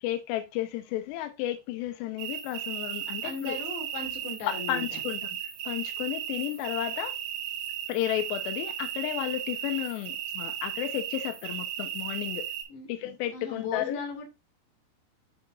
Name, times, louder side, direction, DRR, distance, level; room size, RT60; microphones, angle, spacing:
voice 1, 0.0-3.6 4.5-5.3 5.7-7.2 7.9-12.5 12.9-14.0, left 13 dB, 80° left, 2.6 m, -33 dB
sound 1, 2.2-12.6, right 10 dB, 80° right, 5.1 m, -35 dB
voice 2, 3.2-5.0 12.7-12.9 13.3-14.2, left 4 dB, 60° left, 4.4 m, -37 dB
12.0 x 4.9 x 2.5 m
omnidirectional pair, 5.9 m